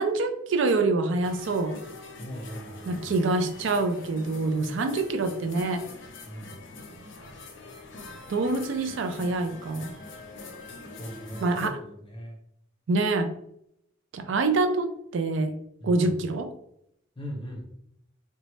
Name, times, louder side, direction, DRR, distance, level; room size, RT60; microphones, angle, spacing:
voice 1, 0.0-1.8 2.9-5.8 8.3-9.9 11.4-11.7 12.9-13.3 14.1-15.5 15.8-16.5, right 3 dB, 70° right, 8 dB, 0.4 m, -26 dB
sound 1, 1.2-11.7, left 3 dB, 65° left, 0.6 m, -44 dB
voice 2, 2.2-3.1 6.3-6.6 10.9-12.4 15.8-16.2 17.2-17.6, equal, 25° left, 0 dB, 0.8 m, -39 dB
3.9 x 2.2 x 3.1 m, 0.74 s
head